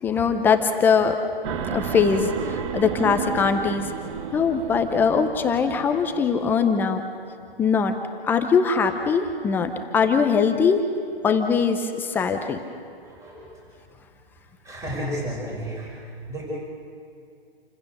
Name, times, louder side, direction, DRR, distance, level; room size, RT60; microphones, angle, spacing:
voice 1, 0.0-1.2 1.6-3.9 4.3-7.0 7.6-7.9 8.2-10.8 11.2-12.6, left 6 dB, 5° left, 6 dB, 0.5 m, -21 dB
sound 1, 1.4-6.4, right 8 dB, 30° right, 1.2 m, -32 dB
voice 2, 13.0-13.5 14.6-15.9 16.3-16.6, equal, 10° right, -4 dB, 5.9 m, -32 dB
28.0 x 15.5 x 6.7 m, 2.4 s
hypercardioid pair, 145°, 31 cm